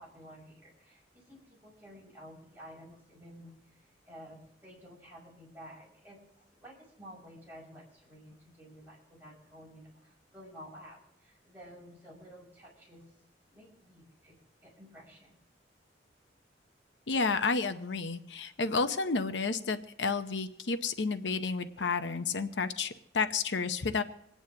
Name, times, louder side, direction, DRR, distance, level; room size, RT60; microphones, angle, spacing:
voice 1, 0.0-13.1 13.5-15.4, equal, 10° right, -5 dB, 5.6 m, -52 dB
voice 2, 17.1-24.0, left 4 dB, 90° left, 9 dB, 0.8 m, -31 dB
27.0 x 9.4 x 2.9 m, 0.84 s
head